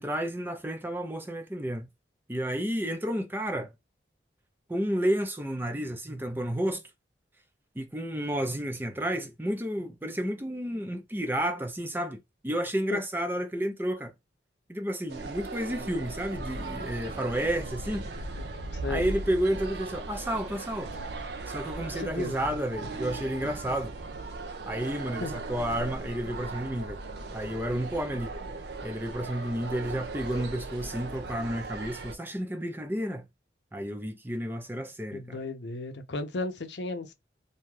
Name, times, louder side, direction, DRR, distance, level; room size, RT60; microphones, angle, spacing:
voice 1, 0.0-1.9 2.3-3.7 4.7-6.8 7.8-12.2 12.4-14.1 14.7-18.1 18.9-21.0 21.5-24.0 24.6-27.0 27.3-28.3 28.8-33.3 33.7-35.4, equal, 10° right, 0.5 m, -31 dB
sound 1, 15.1-32.1, right 3 dB, 65° right, 0.5 m, -38 dB
voice 2, 18.7-19.1 21.9-22.3 25.2-25.3 35.1-37.1, left 3 dB, 80° left, 0.6 m, -35 dB
2.7 x 2.3 x 3.0 m
head